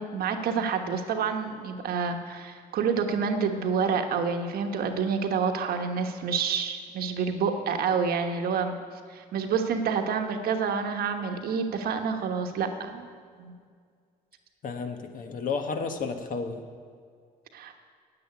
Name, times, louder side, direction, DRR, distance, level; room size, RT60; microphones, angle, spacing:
voice 1, 0.0-8.7 9.1-13.1 13.4-13.5 17.5-17.7, right 6 dB, 65° right, 6 dB, 1.2 m, -28 dB
voice 2, 14.6-16.7, left 5 dB, 55° left, 6 dB, 1.3 m, -32 dB
9.8 x 7.7 x 9.5 m, 2.1 s
cardioid pair, 110°, 17 cm